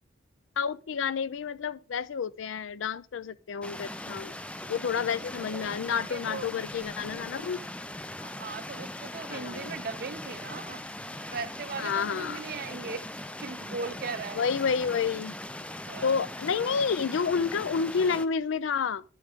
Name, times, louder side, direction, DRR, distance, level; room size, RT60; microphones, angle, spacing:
voice 1, 0.6-4.3 4.7-7.6 9.3-9.7 11.8-12.4 14.4-15.4 16.0-19.0, left 6 dB, 85° left, 0.4 m, -29 dB
sound 1, 3.6-18.3, left 1 dB, 5° left, 0.3 m, -40 dB
voice 2, 5.4-5.7 6.1-6.5 8.2-10.8 11.2-13.1 13.4-14.5 15.9-16.2, right 4 dB, 50° right, 0.6 m, -38 dB
11.5 x 6.3 x 3.6 m
head